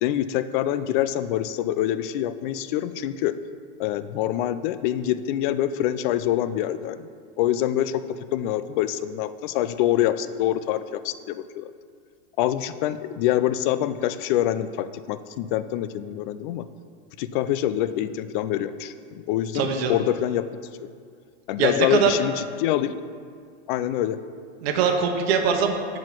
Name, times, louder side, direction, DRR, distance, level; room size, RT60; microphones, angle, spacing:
voice 1, 0.0-3.4 3.8-7.1 7.4-8.0 8.3-11.7 12.4-16.7 17.2-20.5 21.5-22.9 23.7-24.2, left 12 dB, 50° left, 13 dB, 0.4 m, -25 dB
voice 2, 19.5-19.9 21.6-22.1 24.6-25.8, right 6 dB, 65° right, 3 dB, 1.0 m, -22 dB
7.5 x 4.9 x 5.9 m, 2.1 s
supercardioid pair, 135°, 32 cm